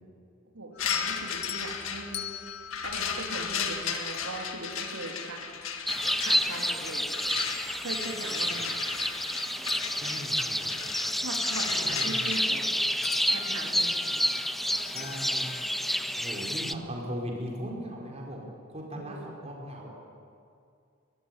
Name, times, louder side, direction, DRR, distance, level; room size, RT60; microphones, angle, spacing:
voice 1, 0.5-2.3 2.8-5.5 6.2-7.1 7.8-8.8 11.1-12.6 13.3-13.9 18.9-19.2, right 2 dB, 85° right, 1 dB, 3.1 m, -39 dB
sound 1, 0.7-4.1 5.7-5.8 6.4-7.6 7.9-9.2 9.5-12.7 13.0-15.7, left 11 dB, 50° left, 0.8 m, -42 dB
sound 2, 0.8-12.4, left 6 dB, 65° left, 1.8 m, -36 dB
sound 3, 5.9-16.7, equal, ahead, 0.5 m, -29 dB
voice 2, 10.0-10.8 11.8-12.2 14.9-15.5 16.2-19.9, equal, 30° right, -2 dB, 4.7 m, -38 dB
22.0 x 18.5 x 9.8 m, 2.4 s
head